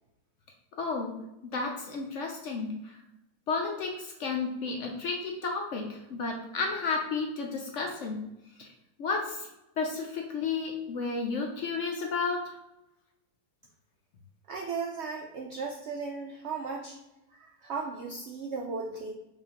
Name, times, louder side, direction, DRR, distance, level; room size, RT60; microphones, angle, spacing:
voice 1, 0.8-1.1 1.5-2.9 3.5-8.2 8.6-8.7 9.0-9.5 9.8-12.4, left 4 dB, 65° left, 1 dB, 0.8 m, -32 dB
voice 2, 14.5-17.0 17.3-19.1, right 4 dB, 80° right, 1 dB, 0.6 m, -36 dB
5.6 x 2.9 x 2.9 m, 0.92 s
omnidirectional pair, 1.7 m